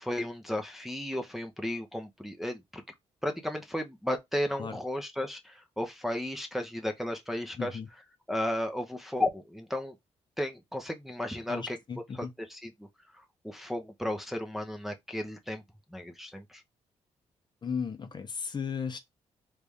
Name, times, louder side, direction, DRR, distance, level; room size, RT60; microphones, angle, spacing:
voice 1, 0.0-2.8 3.2-7.8 8.3-10.0 10.4-11.8 12.2-12.7 13.1-15.6 15.9-16.6, left 1 dB, ahead, 0.7 m, -34 dB
voice 2, 7.6-7.9 11.5-12.3 17.6-19.0, left 6 dB, 40° left, 0.7 m, -35 dB
3.2 x 2.5 x 3.5 m
cardioid pair, 75°, 12 cm